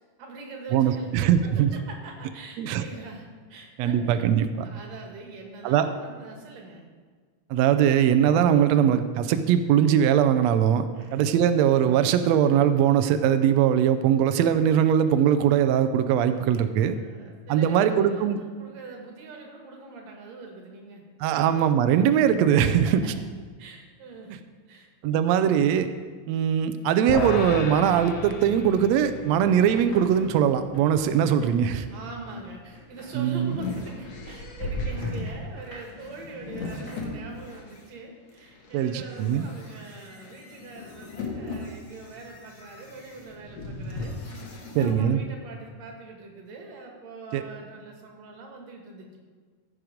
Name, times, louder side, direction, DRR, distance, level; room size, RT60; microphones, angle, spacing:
voice 1, 0.2-1.5 1.9-4.2 4.6-6.9 10.9-11.2 16.9-21.0 21.3-21.5 22.9-23.0 23.6-24.3 24.7-24.9 31.9-49.2, right 3 dB, 60° right, 1 dB, 2.7 m, -43 dB
voice 2, 0.7-1.7 2.6-2.8 3.8-4.7 5.6-5.9 7.5-16.9 17.5-18.4 21.2-23.0 25.0-25.9 26.3-31.9 33.1-33.6 38.7-39.4 44.7-45.2 47.3-47.4, right 9 dB, 90° right, 10 dB, 1.5 m, -21 dB
sound 1, 27.1-33.5, left 5 dB, 75° left, 2.2 m, -37 dB
sound 2, 28.2-29.3 29.5-34.7 35.0-36.0 36.4-37.6, left 1 dB, 30° left, 3.0 m, -49 dB
sound 3, 32.8-37.8 38.4-45.0, left 2 dB, 60° left, 2.3 m, -37 dB
15.5 x 6.3 x 5.0 m, 1.5 s
omnidirectional pair, 3.7 m